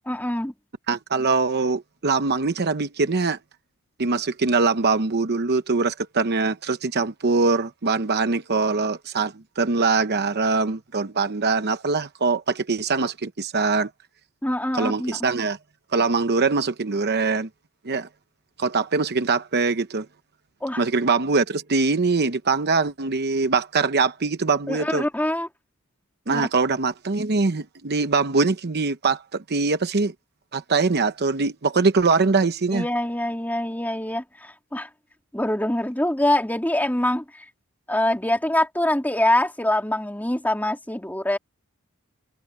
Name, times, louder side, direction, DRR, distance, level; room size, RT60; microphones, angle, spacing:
voice 1, 0.0-0.5 14.4-15.2 20.6-20.8 24.7-25.5 26.3-26.4 32.7-34.9 35.3-37.4 37.9-41.4, left 1 dB, 10° left, 2.8 m, -24 dB
voice 2, 0.9-3.4 4.0-13.9 14.7-15.6 15.9-17.5 17.8-18.1 18.6-20.1 20.8-25.1 26.3-30.1 30.5-32.9, right 4 dB, 50° right, 0.9 m, -23 dB
head